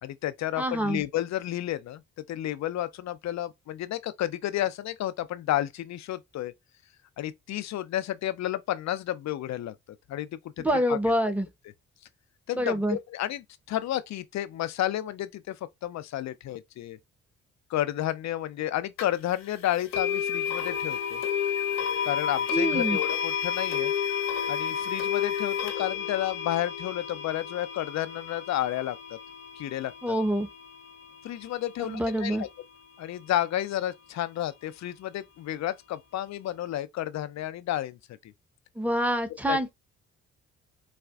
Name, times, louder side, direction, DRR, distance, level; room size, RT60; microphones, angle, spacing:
voice 1, 0.0-6.5 7.2-9.7 10.1-10.3 10.6-11.0 12.5-15.6 15.8-17.0 17.7-21.2 22.0-23.9 24.5-29.2 29.6-30.1 31.2-32.5 33.0-38.3 39.5-39.7, left 13 dB, 50° left, 0.5 m, -31 dB
voice 2, 0.6-1.0 10.6-11.5 12.6-13.0 22.5-23.0 30.0-30.5 31.8-32.4 38.8-39.7, equal, 5° right, 0.8 m, -26 dB
sound 1, 19.0-19.1 19.9-30.9, left 8 dB, 85° left, 0.7 m, -30 dB
4.0 x 2.4 x 2.3 m
hypercardioid pair, 50°, 35 cm